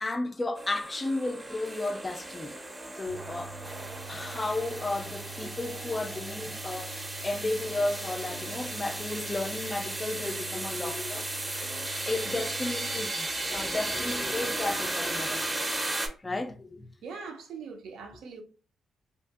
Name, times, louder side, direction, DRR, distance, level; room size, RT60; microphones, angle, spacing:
voice 1, 0.0-2.6 3.0-3.6 4.1-11.3 12.0-15.7 16.2-16.9, left 2 dB, 25° left, 0.3 m, -33 dB
sound 1, 0.6-16.1, right 1 dB, 20° right, 0.6 m, -35 dB
sound 2, 3.1-13.1, right 6 dB, 85° left, 0.5 m, -46 dB
voice 2, 17.0-18.4, right 5 dB, 85° right, 0.6 m, -41 dB
2.8 x 2.5 x 2.3 m
cardioid pair, 90°, 0 cm